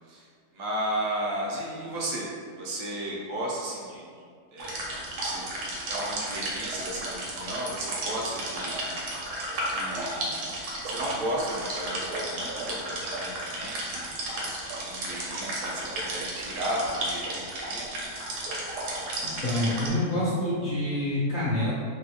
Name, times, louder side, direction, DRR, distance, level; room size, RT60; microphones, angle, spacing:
voice 1, 0.5-2.3 2.6-4.0 4.5-4.8 5.2-5.5 5.9-8.8 9.6-10.4 10.8-14.2 14.7-17.9, right 1 dB, 70° right, -4 dB, 0.8 m, -34 dB
sound 1, 4.6-19.9, right 1 dB, 90° right, 1.2 m, -33 dB
voice 2, 19.4-21.7, left 1 dB, 70° left, -10 dB, 1.0 m, -27 dB
3.2 x 2.2 x 2.7 m, 2.1 s
omnidirectional pair, 1.7 m